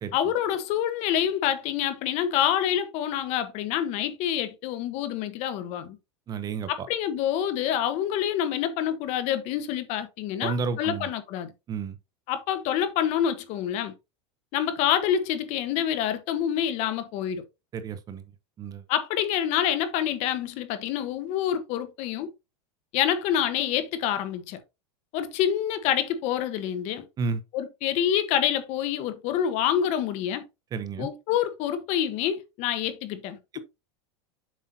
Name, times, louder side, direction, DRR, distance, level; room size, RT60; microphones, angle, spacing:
voice 1, 0.1-6.0 6.7-11.5 12.3-13.9 14.5-17.4 18.9-22.3 22.9-24.6 25.1-27.0 27.5-30.4 31.0-33.6, left 10 dB, 50° left, 1.1 m, -27 dB
voice 2, 6.3-6.9 10.4-11.1 11.7-12.0 17.7-18.2 18.6-18.8 27.2-27.4 30.7-31.1 33.5-33.6, right 5 dB, 25° right, 0.7 m, -31 dB
7.3 x 5.6 x 2.7 m
supercardioid pair, 140°, 15 cm